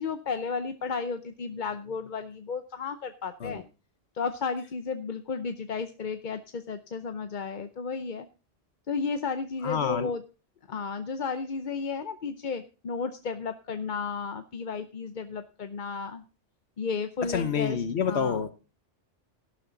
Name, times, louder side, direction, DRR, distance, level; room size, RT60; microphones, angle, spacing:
voice 1, 0.0-3.6 4.1-8.3 8.9-10.2 10.7-16.2 16.8-18.4, left 5 dB, 50° left, 9 dB, 0.8 m, -33 dB
voice 2, 9.6-10.1 17.3-18.5, left 7 dB, 70° left, 11 dB, 1.2 m, -28 dB
13.0 x 12.0 x 3.9 m, 0.33 s
omnidirectional pair, 1.2 m